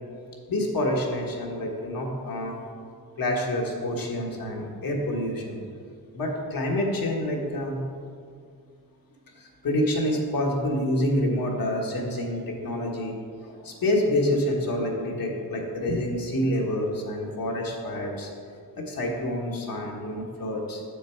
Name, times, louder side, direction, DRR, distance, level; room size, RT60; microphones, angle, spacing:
voice 1, 0.5-2.6 3.2-5.6 6.1-7.8 9.3-13.2 13.4-18.3 18.7-20.8, left 1 dB, 65° left, -1 dB, 1.5 m, -27 dB
7.0 x 6.7 x 4.5 m, 2.2 s
cardioid pair, 95°, 38 cm